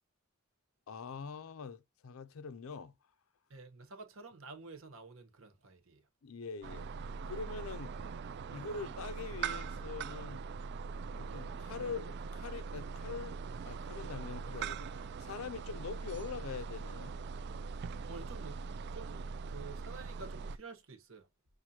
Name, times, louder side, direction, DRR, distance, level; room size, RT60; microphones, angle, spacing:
voice 1, 0.9-2.9 6.2-6.9 7.3-7.9 8.5-10.4 11.1-13.4 13.7-17.1, left 5 dB, 75° left, 0.5 m, -43 dB
voice 2, 3.5-6.0 18.1-18.6 18.9-21.3, right 4 dB, 70° right, 1.2 m, -50 dB
sound 1, 6.6-20.6, right 5 dB, 50° right, 0.3 m, -42 dB
6.0 x 2.6 x 2.8 m
head